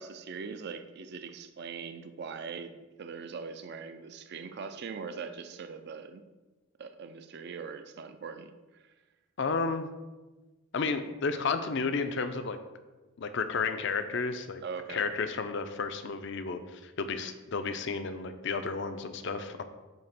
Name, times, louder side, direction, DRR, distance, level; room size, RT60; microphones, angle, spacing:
voice 1, 0.0-6.2 6.8-8.9 14.6-15.1, right 5 dB, 50° right, 9 dB, 0.4 m, -41 dB
voice 2, 9.4-9.9 10.7-12.6 13.2-14.6 14.9-19.6, left 4 dB, 55° left, 9 dB, 0.5 m, -32 dB
7.3 x 2.9 x 5.9 m, 1.2 s
head